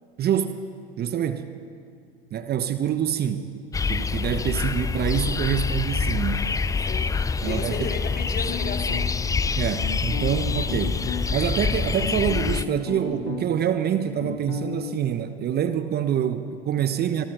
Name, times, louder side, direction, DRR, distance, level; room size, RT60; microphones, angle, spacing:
voice 1, 0.2-0.6 1.0-1.5 2.3-3.5 3.9-6.5 7.4-7.9 9.6-11.0 11.3-17.3, right 9 dB, 35° right, 10 dB, 1.2 m, -26 dB
sound 1, 3.7-12.6, left 4 dB, 10° left, 0.6 m, -26 dB
voice 2, 6.8-7.2 7.5-9.2, left 5 dB, 30° left, 3 dB, 2.7 m, -34 dB
sound 2, 8.5-9.3 9.8-11.3 11.7-13.7 13.9-15.0, left 7 dB, 90° left, 2.1 m, -34 dB
26.5 x 22.5 x 5.0 m, 2.2 s
hypercardioid pair, 90°, 30 cm